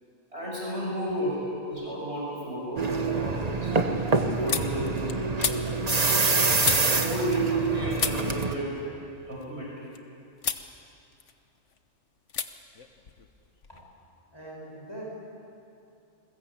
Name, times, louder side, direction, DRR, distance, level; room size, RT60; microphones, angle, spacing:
voice 1, 0.3-3.7 4.4-5.7 6.9-8.8 9.3-9.9, equal, 60° right, -4 dB, 6.6 m, -33 dB
sound 1, 1.7-2.3 2.6-7.7 7.9-10.0 10.4-10.7 11.0-11.8 12.3-12.5 12.7-13.8, left 6 dB, 80° left, 1.5 m, -35 dB
sound 2, 2.8-8.5, right 4 dB, 35° right, 1.3 m, -26 dB
voice 2, 14.3-15.0, right 1 dB, 20° left, -4 dB, 6.2 m, -42 dB
28.5 x 21.0 x 8.7 m, 2.6 s
omnidirectional pair, 1.2 m